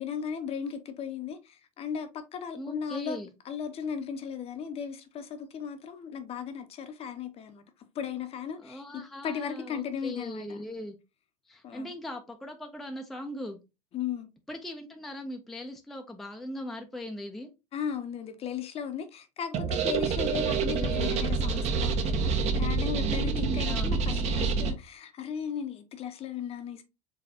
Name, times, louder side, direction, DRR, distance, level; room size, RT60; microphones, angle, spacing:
voice 1, 0.0-3.2 3.4-7.6 7.9-10.6 11.6-11.9 13.9-14.3 17.7-26.8, left 7 dB, 35° left, 0.7 m, -36 dB
voice 2, 2.6-3.3 8.6-11.0 11.5-13.6 14.5-17.5 20.2-21.2 23.1-24.1, left 1 dB, ahead, 0.5 m, -39 dB
sound 1, 19.5-24.7, right 5 dB, 40° right, 0.8 m, -27 dB
4.0 x 3.2 x 2.7 m
figure-of-eight pair, 80°, 18 cm